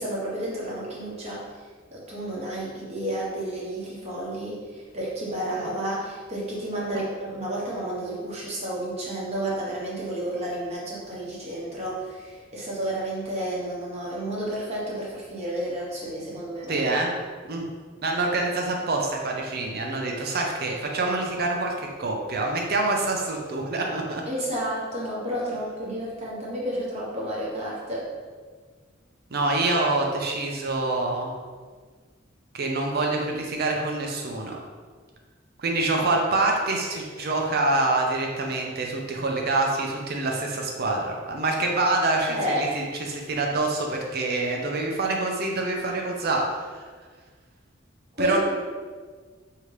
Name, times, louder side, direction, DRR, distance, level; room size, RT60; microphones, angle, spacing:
voice 1, 0.0-1.5 1.9-16.9 24.3-28.1 42.3-42.7 48.2-48.4, right 1 dB, 35° right, -6 dB, 1.0 m, -31 dB
voice 2, 16.7-17.1 17.5-17.7 18.0-24.2 29.3-31.3 32.5-34.6 35.6-46.6 48.2-48.4, right 2 dB, 55° right, 0 dB, 0.6 m, -26 dB
5.0 x 2.8 x 3.2 m, 1.5 s
head